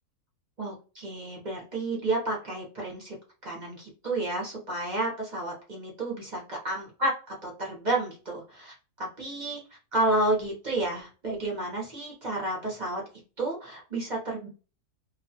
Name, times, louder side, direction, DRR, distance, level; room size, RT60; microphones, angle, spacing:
voice 1, 0.6-3.1 3.4-7.1 7.4-9.6 9.9-13.0 13.4-14.5, right 2 dB, 40° right, -3 dB, 0.7 m, -31 dB
2.4 x 2.3 x 2.6 m, 0.35 s
omnidirectional pair, 1.6 m